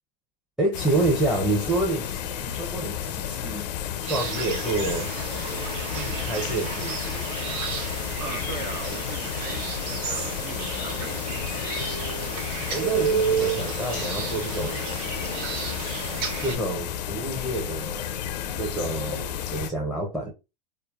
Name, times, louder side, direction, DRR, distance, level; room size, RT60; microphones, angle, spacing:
voice 1, 0.6-3.7 4.0-5.1 5.9-7.3 12.7-14.8 16.4-18.3 18.5-20.3, right 2 dB, ahead, 0.6 m, -28 dB
sound 1, 0.7-19.7, left 9 dB, 80° left, 0.5 m, -32 dB
sound 2, 4.1-16.6, right 6 dB, 60° right, 0.9 m, -31 dB
voice 2, 8.2-11.5, right 6 dB, 45° right, 0.4 m, -39 dB
3.1 x 2.0 x 2.3 m
hypercardioid pair, 110°, 21 cm